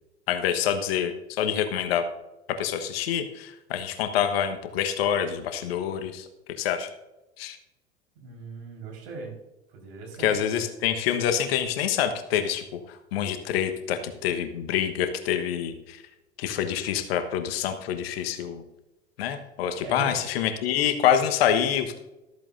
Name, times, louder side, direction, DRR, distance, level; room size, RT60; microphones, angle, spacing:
voice 1, 0.3-2.0 2.6-6.3 6.6-6.9 7.4-7.6 10.2-16.0 16.4-18.6 19.2-22.0, left 9 dB, 60° left, 8 dB, 1.3 m, -26 dB
voice 2, 8.1-9.3 9.7-10.6 19.8-20.4, right 4 dB, 60° right, 0 dB, 4.5 m, -40 dB
13.5 x 13.5 x 2.6 m, 0.98 s
figure-of-eight pair, 75°, 33 cm